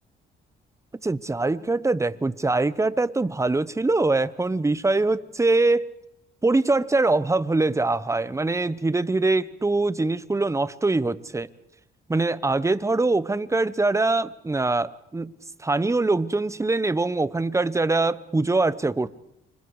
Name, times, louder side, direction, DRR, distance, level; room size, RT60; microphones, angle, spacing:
voice 1, 1.0-5.9 6.4-11.5 12.1-15.3 15.6-19.1, right 3 dB, 15° right, 16 dB, 1.0 m, -23 dB
29.0 x 25.5 x 4.9 m, 0.78 s
cardioid pair, 90°, 20 cm